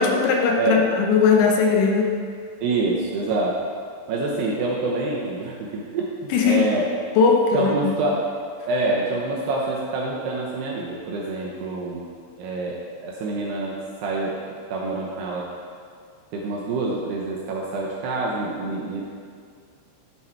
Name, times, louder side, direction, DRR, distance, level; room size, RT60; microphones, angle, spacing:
voice 1, 0.0-2.2 6.3-6.6 7.2-7.9, left 5 dB, 75° left, 1 dB, 3.0 m, -19 dB
voice 2, 0.6-0.9 2.6-3.6 4.1-6.9 7.5-8.2 8.7-12.0 12.4-15.5 16.3-19.0, right 3 dB, 75° right, -3 dB, 2.4 m, -26 dB
12.0 x 7.7 x 4.4 m, 2.2 s
omnidirectional pair, 5.8 m